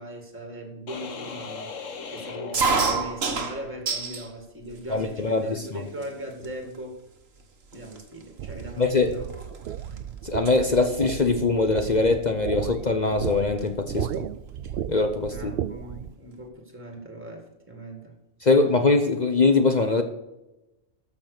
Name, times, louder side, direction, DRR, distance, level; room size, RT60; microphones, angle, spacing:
voice 1, 0.0-6.9 7.7-9.5 15.3-18.1, equal, 10° right, 3 dB, 2.0 m, -39 dB
sound 1, 0.9-3.5, left 5 dB, 60° left, 1.5 m, -38 dB
sound 2, 2.5-4.3 4.7-5.4 6.0-6.1 6.4-6.8 7.4-7.5 7.7-10.0 10.2-10.6 11.9-12.1 13.2-13.3 13.6-13.7 13.9-14.8, right 4 dB, 45° right, 1.5 m, -28 dB
voice 2, 4.9-5.4 8.8-9.2 10.2-14.2 14.9-15.5 18.4-20.0, left 3 dB, 40° left, 7 dB, 0.8 m, -22 dB
sound 3, 8.4-16.1, right 10 dB, 80° right, 0.5 m, -34 dB
13.5 x 6.1 x 6.5 m, 0.96 s
omnidirectional pair, 1.5 m